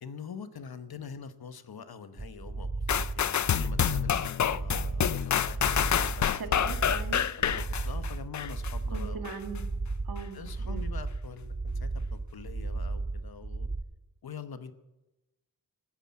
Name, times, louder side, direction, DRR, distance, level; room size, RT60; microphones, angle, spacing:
voice 1, 0.0-6.3 6.7-6.8 7.4-9.3 10.3-13.7 14.2-14.7, left 6 dB, 80° left, 11 dB, 1.0 m, -45 dB
sound 1, 2.2-13.8, right 3 dB, 25° right, 0.7 m, -35 dB
sound 2, 2.9-8.7 9.2-9.4, left 9 dB, 50° left, 0.4 m, -28 dB
voice 2, 6.3-7.3 8.9-9.6 10.0-10.9, right 5 dB, 70° right, 5 dB, 1.8 m, -40 dB
14.0 x 9.9 x 7.4 m, 1.0 s
wide cardioid pair, 90°, 36 cm